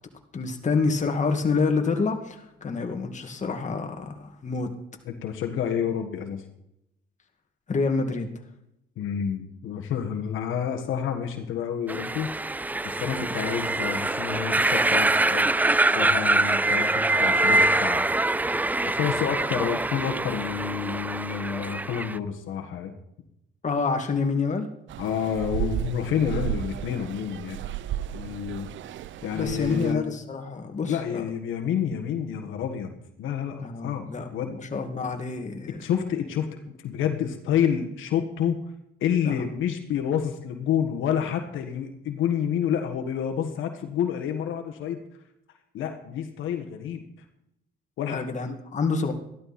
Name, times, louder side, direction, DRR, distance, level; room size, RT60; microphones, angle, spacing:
voice 1, 0.3-4.7 7.7-8.3 13.0-13.3 23.6-24.7 29.3-31.2 33.6-35.8 39.2-39.4 48.1-49.1, left 4 dB, 35° left, 4 dB, 2.1 m, -27 dB
voice 2, 5.0-6.4 9.0-12.3 12.8-15.5 15.9-18.0 18.8-22.9 25.0-27.6 28.1-28.7 29.2-30.1 30.8-32.9 33.2-34.0 34.3-34.6 35.8-36.5 36.8-38.6 39.0-45.0 45.7-47.0 48.0-48.2, left 8 dB, 85° left, 4 dB, 1.6 m, -29 dB
sound 1, 11.9-22.2, right 2 dB, 10° right, 0.3 m, -24 dB
sound 2, 24.9-29.9, right 12 dB, 75° right, 0.6 m, -33 dB
14.0 x 12.5 x 4.3 m, 0.81 s
cardioid pair, 90°, 20 cm